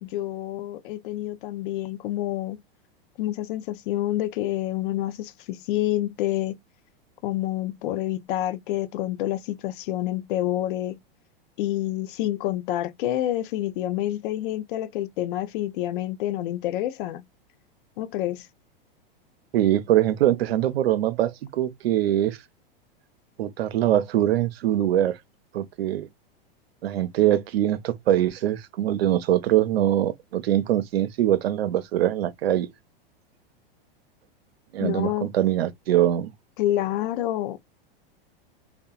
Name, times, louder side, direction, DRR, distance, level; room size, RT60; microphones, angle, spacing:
voice 1, 0.0-2.6 3.2-6.6 7.2-11.0 11.6-17.2 18.0-18.5 34.8-35.3 36.6-37.6, left 13 dB, 60° left, 0.5 m, -28 dB
voice 2, 19.5-22.4 23.4-25.2 25.5-26.1 26.8-32.7 34.7-36.3, right 12 dB, 85° right, 0.5 m, -23 dB
2.8 x 2.1 x 2.3 m
hypercardioid pair, 120°, 30 cm